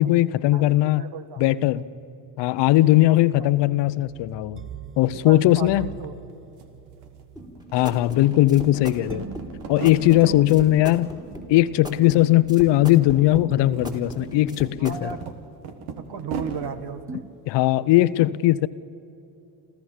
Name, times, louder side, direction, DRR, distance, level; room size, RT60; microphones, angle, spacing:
voice 1, 0.0-1.0 1.4-1.8 2.4-4.6 5.0-5.9 7.7-9.3 9.7-11.1 11.5-15.1 17.5-18.7, left 15 dB, 70° left, 0.8 m, -19 dB
voice 2, 0.5-1.4 3.0-3.5 5.0-6.2 10.2-10.4 14.8-15.2 16.0-17.3, right 6 dB, 65° right, 1.7 m, -35 dB
sound 1, 1.5-16.7 17.1-17.2, right 5 dB, 30° right, 1.1 m, -42 dB
sound 2, 6.3-6.4 6.6-7.7 8.1-10.3 10.7-11.4 11.7-12.5 12.8-13.0 13.4-16.7, right 5 dB, 85° right, 1.7 m, -39 dB
sound 3, 7.4-15.2, equal, 10° right, 3.6 m, -38 dB
27.5 x 14.5 x 7.3 m
hypercardioid pair, 60°, 44 cm